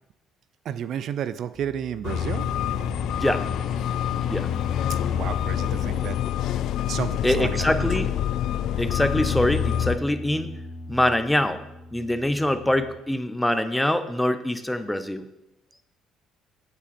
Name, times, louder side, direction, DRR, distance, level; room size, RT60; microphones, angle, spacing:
voice 1, 0.6-2.5 4.9-6.2 6.9-7.9, right 9 dB, 60° right, 15 dB, 0.5 m, -32 dB
sound 1, 1.5-13.0, right 1 dB, 15° right, 1.7 m, -44 dB
sound 2, 2.0-10.0, left 10 dB, 70° left, 0.4 m, -26 dB
sound 3, 3.1-12.7, left 5 dB, 40° left, 1.6 m, -42 dB
voice 2, 7.2-8.1 8.8-10.5 10.9-11.6 11.9-15.3, left 1 dB, 5° left, 11 dB, 0.8 m, -24 dB
8.7 x 8.2 x 4.3 m, 0.89 s
supercardioid pair, 80°, 0 cm